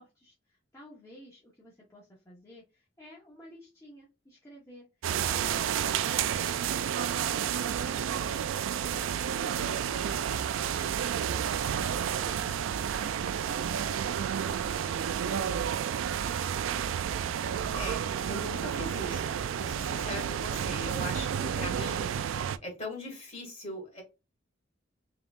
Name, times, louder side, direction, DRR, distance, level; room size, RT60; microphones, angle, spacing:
voice 1, 0.0-4.9 5.1-15.9, equal, 15° left, 1.1 m, -53 dB
sound 1, 5.0-22.6, right 8 dB, 80° right, 0.3 m, -31 dB
voice 2, 17.7-22.1 22.6-24.0, left 1 dB, 35° left, 2.1 m, -40 dB
3.9 x 3.6 x 2.5 m
head